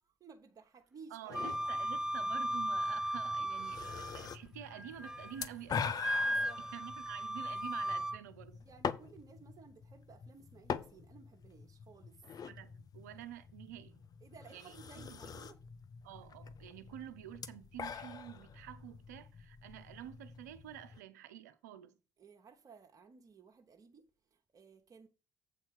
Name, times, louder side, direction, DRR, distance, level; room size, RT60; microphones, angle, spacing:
voice 1, 0.0-1.7 6.2-6.6 8.6-12.2 14.2-15.6 22.2-25.1, right 5 dB, 40° right, 1.1 m, -57 dB
voice 2, 1.1-6.0 6.6-8.6 12.4-14.1 14.5-15.4 16.0-22.0, right 11 dB, 75° right, 0.6 m, -49 dB
sound 1, 1.3-21.0, left 6 dB, 45° left, 0.7 m, -45 dB
Wind instrument woodwind instrument, 1.3-4.3 4.7-5.5 6.0-8.2, equal, 5° right, 0.5 m, -36 dB
8.1 x 4.3 x 6.3 m
figure-of-eight pair, 45°, 9 cm